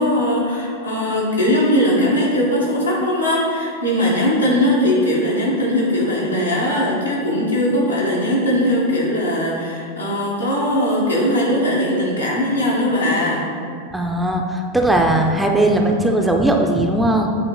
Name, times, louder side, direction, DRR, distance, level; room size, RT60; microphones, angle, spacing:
voice 1, 0.0-13.4, left 1 dB, 85° left, -6 dB, 1.4 m, -19 dB
voice 2, 13.9-17.3, right 1 dB, 5° right, 2 dB, 0.5 m, -18 dB
8.2 x 3.1 x 3.9 m, 2.3 s
figure-of-eight pair, 90°, 0 cm